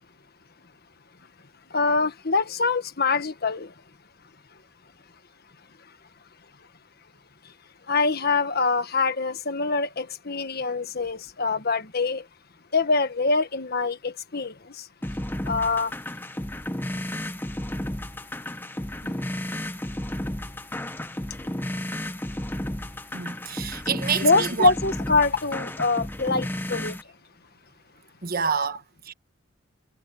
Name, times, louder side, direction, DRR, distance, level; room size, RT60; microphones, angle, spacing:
voice 1, 1.7-3.7 5.8-6.0 7.4-7.5 7.9-12.3 12.7-14.9 15.4-15.9 16.9-17.0 19.0-19.1 23.6-23.7 24.2-27.0, left 3 dB, 50° left, 1.5 m, -24 dB
sound 1, 15.0-27.0, left 1 dB, 10° left, 0.9 m, -32 dB
voice 2, 23.1-24.7 28.2-29.1, right 6 dB, 45° right, 1.2 m, -28 dB
head